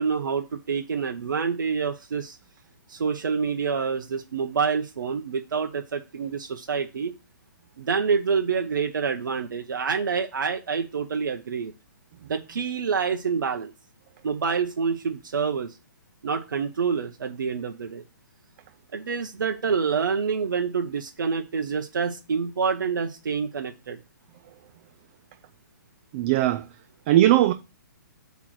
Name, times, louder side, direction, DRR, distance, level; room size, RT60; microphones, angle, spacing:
voice 1, 0.0-2.4 2.9-7.1 7.8-11.7 12.2-13.7 14.2-15.8 16.2-18.0 18.9-24.0, right 5 dB, 75° right, 0.9 m, -27 dB
voice 2, 26.1-26.7 27.1-27.5, right 13 dB, 35° right, 0.4 m, -19 dB
8.2 x 3.1 x 6.3 m
hypercardioid pair, 145°, 11 cm